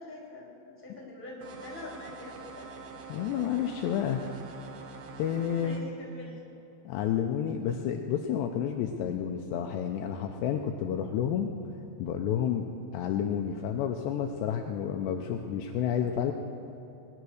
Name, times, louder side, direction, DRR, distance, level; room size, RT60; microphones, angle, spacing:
voice 1, 0.0-2.7 5.5-6.4, left 2 dB, 5° left, -3 dB, 3.0 m, -44 dB
sound 1, 1.4-5.8, right 5 dB, 70° right, 2.3 m, -45 dB
voice 2, 3.1-4.2 5.2-5.9 6.9-11.5 12.0-12.7 12.9-16.3, left 9 dB, 80° left, 3 dB, 2.7 m, -30 dB
20.0 x 10.5 x 6.4 m, 3.0 s
omnidirectional pair, 5.5 m